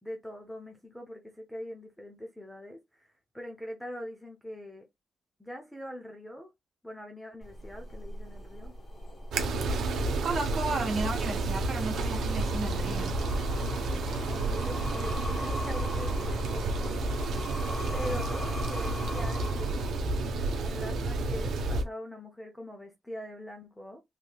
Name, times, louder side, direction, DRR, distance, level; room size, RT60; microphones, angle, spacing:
voice 1, 0.0-4.8 5.4-6.5 6.8-8.7 13.9-17.0 17.9-20.1 20.6-24.0, equal, 5° left, 0.6 m, -42 dB
sound 1, 7.4-20.4, left 1 dB, 35° left, 1.2 m, -41 dB
sound 2, 9.3-21.8, right 2 dB, 80° right, 0.8 m, -30 dB
voice 2, 10.2-13.1, right 3 dB, 40° right, 1.5 m, -33 dB
3.6 x 3.1 x 2.2 m
wide cardioid pair, 170°, 0 cm